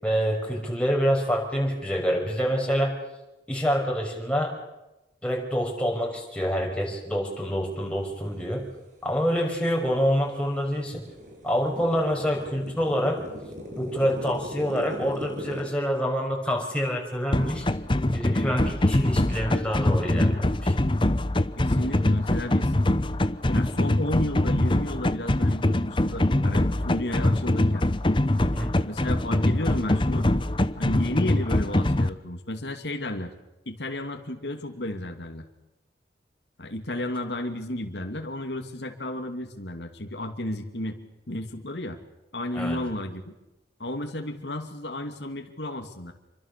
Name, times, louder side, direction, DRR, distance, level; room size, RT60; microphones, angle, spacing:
voice 1, 0.0-3.0 3.5-4.5 5.2-8.7 9.0-11.0 11.4-13.2 13.8-17.7 18.1-20.8 28.5-28.7 42.5-42.8, equal, 5° left, -1 dB, 5.9 m, -26 dB
sound 1, 9.1-9.2 9.7-15.6, equal, 45° right, 6.4 m, -39 dB
sound 2, 17.3-32.1, left 1 dB, 30° left, 0.9 m, -23 dB
voice 2, 21.6-22.7 23.5-27.9 28.9-30.3 30.8-33.3 33.7-35.5 36.6-41.0 41.3-42.0 42.3-43.3 43.8-46.1, left 1 dB, 80° left, 4 dB, 2.7 m, -33 dB
28.5 x 24.5 x 7.0 m, 0.97 s
head